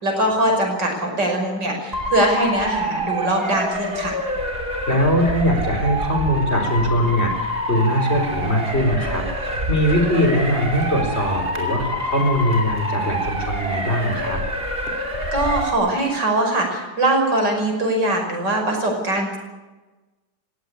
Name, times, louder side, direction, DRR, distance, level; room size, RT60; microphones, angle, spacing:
voice 1, 0.0-4.2 15.3-19.4, right 1 dB, 80° right, 2 dB, 6.3 m, -21 dB
Motor vehicle (road) / Siren, 1.9-15.7, equal, 30° right, 3.2 m, -26 dB
voice 2, 4.9-14.4, equal, 35° left, 4 dB, 4.6 m, -21 dB
19.0 x 16.5 x 9.9 m, 1.2 s
omnidirectional pair, 1.9 m